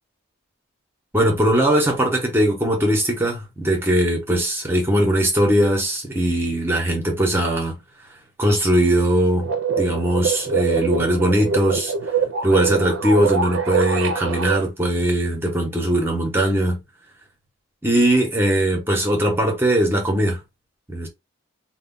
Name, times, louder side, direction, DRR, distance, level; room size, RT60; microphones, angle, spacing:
voice 1, 1.1-7.8 8.4-9.5 9.8-11.9 12.4-16.8 17.8-20.4 20.9-21.1, right 1 dB, 10° right, 0.7 m, -20 dB
sound 1, 9.4-14.6, right 6 dB, 65° right, 0.4 m, -24 dB
2.2 x 2.1 x 3.6 m
head